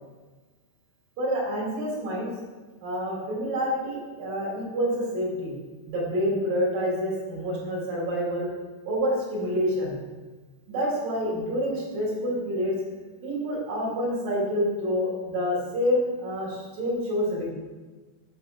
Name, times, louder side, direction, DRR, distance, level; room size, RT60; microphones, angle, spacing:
voice 1, 1.2-2.3 2.8-5.6 5.9-8.5 8.8-10.0 10.7-12.7 13.2-17.5, equal, 55° right, -5 dB, 2.9 m, -27 dB
7.6 x 5.9 x 2.4 m, 1.3 s
omnidirectional pair, 5.9 m